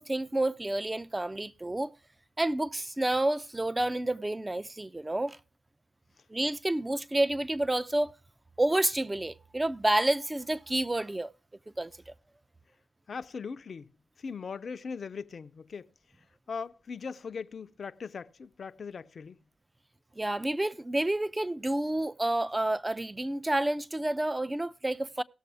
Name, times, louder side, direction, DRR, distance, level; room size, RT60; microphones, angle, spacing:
voice 1, 0.0-1.9 2.4-5.4 6.3-8.1 8.6-11.3 11.8-12.1 20.2-25.2, right 1 dB, 20° right, 0.7 m, -29 dB
voice 2, 13.1-13.9 14.2-15.9 16.5-19.4, left 5 dB, 55° left, 0.6 m, -39 dB
18.0 x 6.8 x 3.4 m
supercardioid pair, 50°, 0 cm